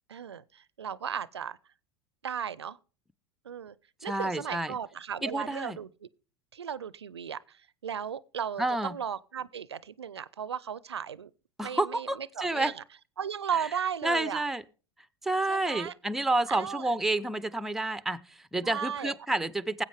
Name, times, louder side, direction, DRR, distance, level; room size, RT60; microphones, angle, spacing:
voice 1, 0.1-1.6 2.2-2.8 3.4-3.8 4.0-6.1 6.5-11.3 11.6-12.8 13.2-14.4 15.5-15.9 16.5-16.9 18.6-19.1, right 8 dB, 85° right, 0.4 m, -36 dB
voice 2, 4.0-4.7 5.2-5.8 8.6-9.0 11.6-12.7 13.5-13.7 14.0-14.6 15.2-19.8, right 2 dB, ahead, 0.5 m, -29 dB
19.5 x 8.1 x 3.4 m
figure-of-eight pair, 80°, 14 cm